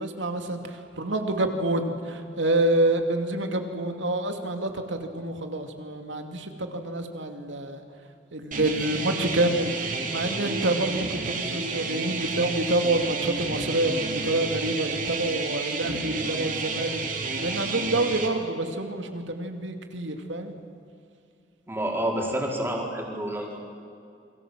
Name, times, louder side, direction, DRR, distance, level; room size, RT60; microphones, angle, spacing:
voice 1, 0.0-7.8 8.3-20.5, right 2 dB, 80° right, 5 dB, 2.6 m, -27 dB
sound 1, 8.5-18.3, right 3 dB, 45° right, 2.9 m, -31 dB
voice 2, 21.7-23.6, right 1 dB, 15° right, -1 dB, 4.2 m, -29 dB
28.5 x 23.0 x 7.6 m, 2.5 s
head